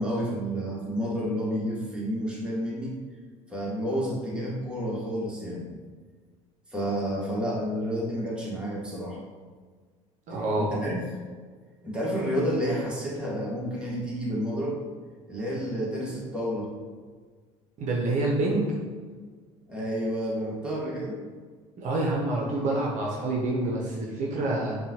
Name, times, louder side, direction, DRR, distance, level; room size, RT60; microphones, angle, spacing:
voice 1, 0.0-2.9 3.5-5.7 6.7-9.2 10.6-11.0 11.8-14.8 15.3-16.7 19.7-21.2, equal, 5° right, -5 dB, 1.4 m, -30 dB
voice 2, 10.3-10.7 17.8-18.8 21.8-24.8, right 2 dB, 50° right, -2 dB, 0.7 m, -27 dB
5.4 x 2.3 x 2.9 m, 1.5 s
hypercardioid pair, 65°, 16 cm